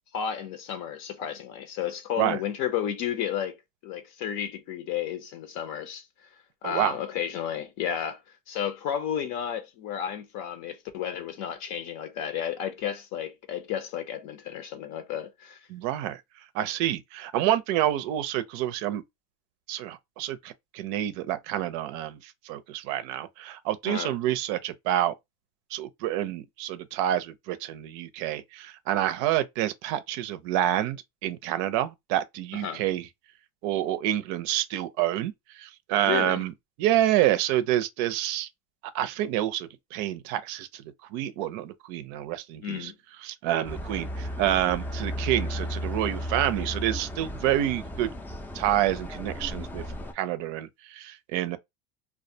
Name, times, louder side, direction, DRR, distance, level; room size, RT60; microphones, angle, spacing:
voice 1, 0.1-3.6 3.8-6.0 6.6-8.2 8.5-15.6 23.8-24.2 32.5-32.8 36.0-36.4 42.6-42.9, left 9 dB, 60° left, 0.6 m, -32 dB
voice 2, 6.6-7.0 15.7-16.2 16.5-19.0 19.7-25.1 25.7-33.1 33.6-36.5 36.8-38.5 38.9-40.8 41.1-42.9 43.2-48.1 48.5-49.8 50.1-51.6, right 12 dB, 65° right, 0.5 m, -28 dB
sound 1, 43.6-50.1, equal, 5° left, 0.4 m, -35 dB
2.3 x 2.1 x 2.6 m
supercardioid pair, 110°, 30 cm